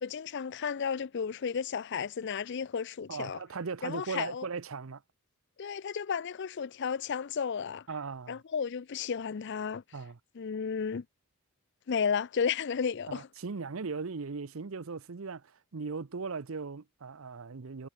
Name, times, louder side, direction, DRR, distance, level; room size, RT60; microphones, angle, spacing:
voice 1, 0.0-3.4 3.8-4.5 5.6-7.9 8.3-9.8 10.4-11.0 11.9-13.3, left 6 dB, 50° left, 0.4 m, -33 dB
voice 2, 3.1-5.0 7.9-8.4 9.9-10.2 13.1-15.4 15.7-17.9, right 4 dB, 65° right, 0.7 m, -38 dB
head